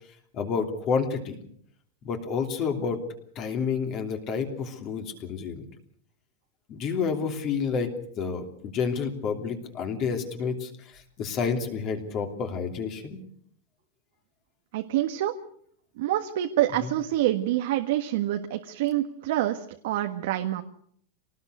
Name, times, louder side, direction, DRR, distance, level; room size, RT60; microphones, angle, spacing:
voice 1, 0.3-1.4 2.0-3.0 3.3-5.6 6.7-7.9 8.2-13.2, left 5 dB, 30° left, 5 dB, 3.0 m, -29 dB
voice 2, 14.7-15.3 16.0-20.6, right 13 dB, 60° right, 5 dB, 1.5 m, -26 dB
26.0 x 19.0 x 6.6 m, 0.63 s
supercardioid pair, 170°, 0 cm